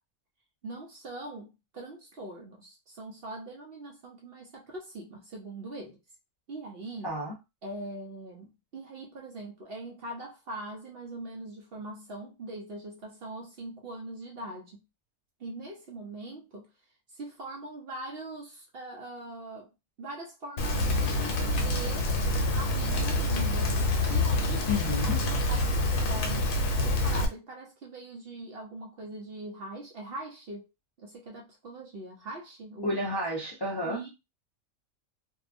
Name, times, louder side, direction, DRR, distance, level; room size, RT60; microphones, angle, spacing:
voice 1, 0.6-6.0 6.5-7.1 7.6-14.8 15.4-16.7 17.1-19.7 20.0-22.1 22.5-23.8 24.1-24.7 25.0-26.6 26.8-30.6 31.0-33.0 33.8-34.1, right 2 dB, 55° right, 0.8 m, -42 dB
voice 2, 7.0-7.4 24.7-25.2 32.8-34.0, left 1 dB, 25° left, 0.6 m, -31 dB
Rain, 20.6-27.3, left 2 dB, 90° left, 1.1 m, -27 dB
2.7 x 2.3 x 2.5 m
omnidirectional pair, 1.4 m